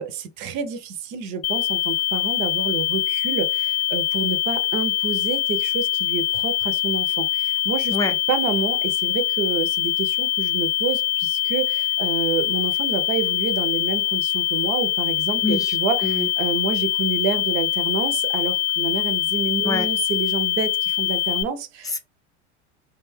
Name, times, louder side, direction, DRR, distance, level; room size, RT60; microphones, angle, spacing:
voice 1, 0.0-8.0 8.3-21.9, right 6 dB, 50° right, 0.7 m, -28 dB
sound 1, 1.4-21.4, left 14 dB, 60° left, 0.5 m, -23 dB
voice 2, 15.4-15.8 16.0-16.3 19.6-19.9 21.8-22.0, left 2 dB, 10° left, 0.6 m, -25 dB
2.5 x 2.3 x 3.3 m
hypercardioid pair, 85°, 36 cm